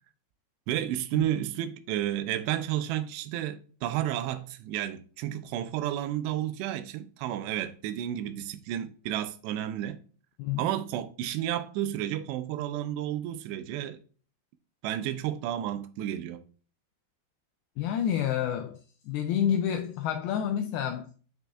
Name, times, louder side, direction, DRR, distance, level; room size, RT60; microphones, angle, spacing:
voice 1, 0.7-10.0 10.6-14.0 14.8-16.4, right 12 dB, 85° right, 2.7 m, -31 dB
voice 2, 17.8-21.1, left 9 dB, 85° left, 2.2 m, -29 dB
8.6 x 6.1 x 2.3 m
omnidirectional pair, 4.9 m